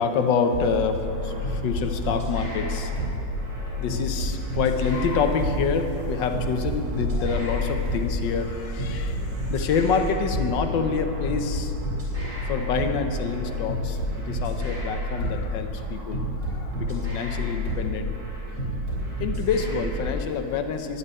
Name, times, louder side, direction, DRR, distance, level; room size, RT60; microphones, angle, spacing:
voice 1, 0.0-3.3 3.8-11.7 12.5-18.1 19.2-21.0, left 5 dB, 80° left, 6 dB, 1.5 m, -27 dB
sound 1, 0.5-20.1, left 1 dB, 75° right, 4.1 m, -30 dB
sound 2, 4.6-10.1, left 1 dB, 35° right, 2.5 m, -35 dB
11.0 x 8.3 x 8.9 m, 3.0 s
omnidirectional pair, 2.0 m